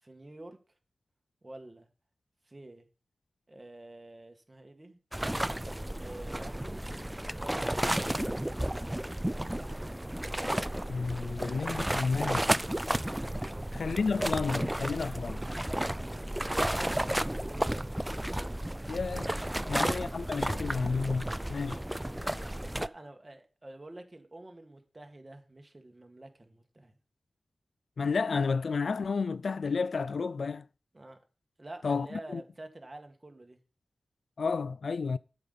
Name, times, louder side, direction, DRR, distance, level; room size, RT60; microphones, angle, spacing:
voice 1, 0.0-0.6 1.4-1.9 2.4-2.9 3.5-5.0 6.0-6.8 7.4-8.5 13.4-13.7 16.8-17.9 19.6-19.9 22.7-27.0 30.9-31.2 31.6-33.6, right 2 dB, 30° right, 2.0 m, -48 dB
sound 1, 5.1-22.9, right 1 dB, 10° right, 0.4 m, -32 dB
voice 2, 10.9-12.5 13.7-15.4 18.9-19.3 19.7-21.8 28.0-30.7 31.8-32.1 32.3-32.4 34.4-35.2, left 4 dB, 75° left, 0.3 m, -31 dB
8.2 x 5.5 x 6.8 m
cardioid pair, 50°, 0 cm